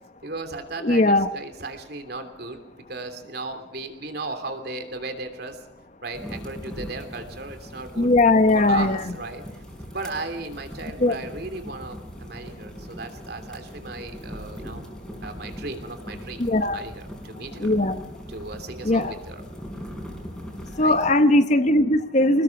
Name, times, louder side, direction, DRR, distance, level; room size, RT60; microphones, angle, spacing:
voice 1, 0.2-2.6 2.9-5.6 6.0-8.1 8.5-9.6 9.9-14.9 15.2-17.7 18.3-19.5 20.7-21.0, right 3 dB, 55° right, 7 dB, 3.1 m, -36 dB
voice 2, 0.8-1.3 8.0-9.0 11.0-11.1 16.4-16.8 17.6-18.0 18.8-19.1 20.8-22.4, left 2 dB, 40° left, 11 dB, 1.0 m, -19 dB
sound 1, 6.1-21.1, equal, ahead, 5.0 m, -40 dB
26.5 x 20.5 x 6.0 m, 0.87 s
head